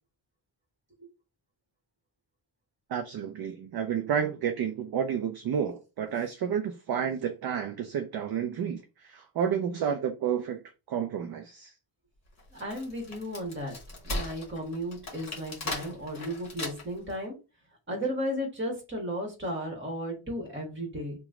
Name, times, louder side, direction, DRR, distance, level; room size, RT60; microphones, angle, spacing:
voice 1, 2.9-10.6 10.9-11.7, right 8 dB, 50° right, 0.5 m, -30 dB
Wood, 12.4-17.1, left 2 dB, 35° left, 1.2 m, -38 dB
voice 2, 12.5-13.8 14.0-17.3 17.9-21.1, equal, 25° right, 1.3 m, -34 dB
2.9 x 2.3 x 3.6 m
wide cardioid pair, 150°, 49 cm